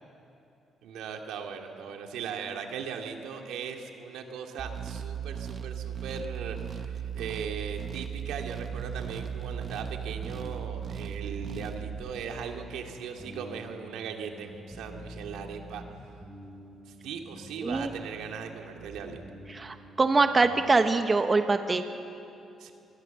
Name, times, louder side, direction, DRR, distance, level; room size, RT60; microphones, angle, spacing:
voice 1, 0.8-15.8 16.9-19.2 22.6-22.7, right 6 dB, 85° right, 3 dB, 2.3 m, -39 dB
sound 1, 4.6-12.1, right 8 dB, 50° right, 1.3 m, -37 dB
sound 2, 8.7-20.6, right 1 dB, ahead, 5.2 m, -46 dB
voice 2, 19.5-21.8, right 3 dB, 30° right, 8 dB, 1.1 m, -24 dB
26.5 x 21.0 x 7.1 m, 2.8 s
cardioid pair, 90°, 0 cm